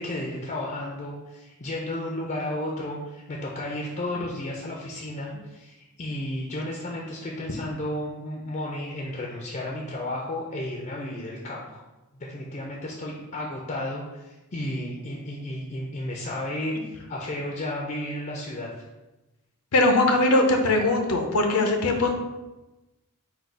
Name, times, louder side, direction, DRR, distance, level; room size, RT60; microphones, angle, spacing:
voice 1, 0.0-11.8 12.2-18.7, left 1 dB, 35° left, -2 dB, 0.5 m, -33 dB
voice 2, 19.7-22.1, left 2 dB, 85° left, 3 dB, 0.7 m, -21 dB
3.9 x 2.3 x 4.5 m, 1.1 s
head